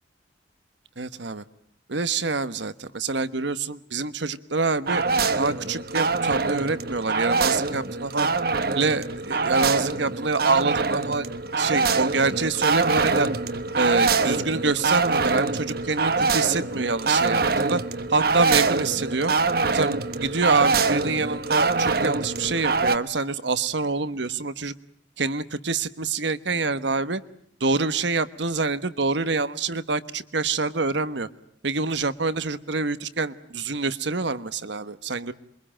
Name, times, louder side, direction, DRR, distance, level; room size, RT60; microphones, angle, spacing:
voice 1, 1.0-1.4 1.9-5.0 5.4-8.3 8.8-11.3 11.5-13.3 13.8-17.8 18.1-19.3 19.7-24.7 25.2-27.2 27.6-31.3 31.6-35.3, right 3 dB, 70° right, 14 dB, 1.2 m, -26 dB
sound 1, 4.9-23.0, right 4 dB, 55° right, 1.2 m, -24 dB
28.0 x 23.5 x 8.9 m, 0.67 s
head